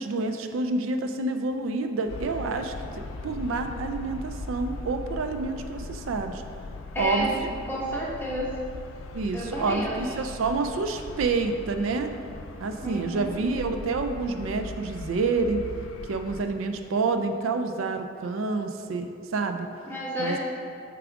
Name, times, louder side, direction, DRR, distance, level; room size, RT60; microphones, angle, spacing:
voice 1, 0.0-2.7 3.2-6.4 7.0-7.5 9.1-12.1 12.6-15.6 16.1-19.7 20.2-20.4, right 3 dB, 80° right, 7 dB, 0.4 m, -28 dB
sound 1, 2.1-16.4, left 3 dB, 80° left, 0.4 m, -39 dB
voice 2, 6.9-7.3 7.7-8.5 9.3-10.0 12.8-13.3 19.9-20.4, equal, 10° left, -6 dB, 1.2 m, -30 dB
6.9 x 4.8 x 3.5 m, 2.4 s
head